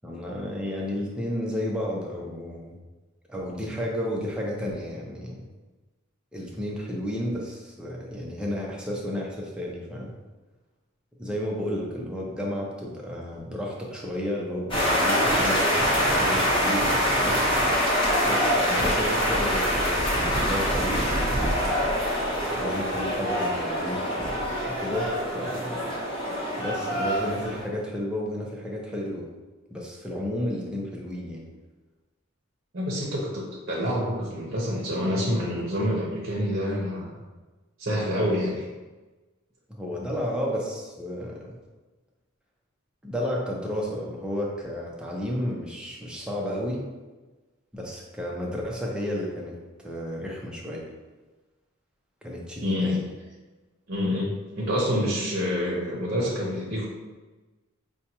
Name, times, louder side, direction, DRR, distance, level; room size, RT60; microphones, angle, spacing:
voice 1, 0.0-2.8 3.3-5.5 6.3-10.1 11.2-15.7 15.9-17.4 18.2-21.3 22.5-25.8 26.6-29.3 29.7-31.4 39.7-41.6 43.0-46.8 47.7-50.8 52.2-53.0, equal, 5° right, -3 dB, 0.6 m, -32 dB
sound 1, 14.7-27.6, equal, 25° left, 1.0 m, -25 dB
voice 2, 32.7-37.2 37.8-38.7 52.6-53.0 53.9-56.9, equal, 55° right, -4 dB, 0.8 m, -27 dB
5.1 x 2.3 x 2.9 m, 1.2 s
head